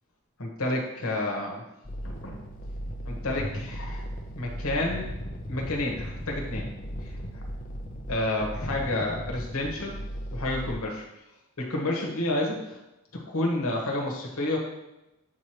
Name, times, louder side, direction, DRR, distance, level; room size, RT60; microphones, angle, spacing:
voice 1, 0.4-1.6 2.0-2.4 3.0-4.0 4.3-5.1 5.5-6.7 7.0-7.2 8.1-10.0 10.3-11.0 11.6-12.8 13.3-14.6, left 1 dB, 80° left, -1 dB, 1.3 m, -30 dB
sound 1, 1.8-10.7, equal, 35° left, 0.7 m, -36 dB
8.1 x 3.0 x 4.9 m, 0.95 s
head